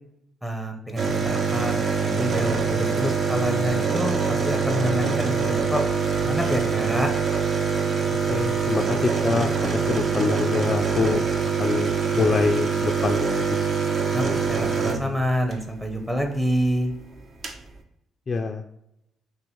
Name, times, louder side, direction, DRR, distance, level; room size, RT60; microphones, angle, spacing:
voice 1, 0.4-5.8 6.2-7.1 14.1-16.9, equal, 10° right, 4 dB, 0.7 m, -27 dB
sound 1, 1.0-15.6 16.9-17.0 17.2-17.6, right 5 dB, 50° right, 0.6 m, -24 dB
voice 2, 8.3-11.3 11.6-13.5 18.3-18.6, left 4 dB, 40° left, 3 dB, 0.3 m, -25 dB
6.0 x 2.1 x 3.0 m, 0.80 s
cardioid pair, 90°, 0 cm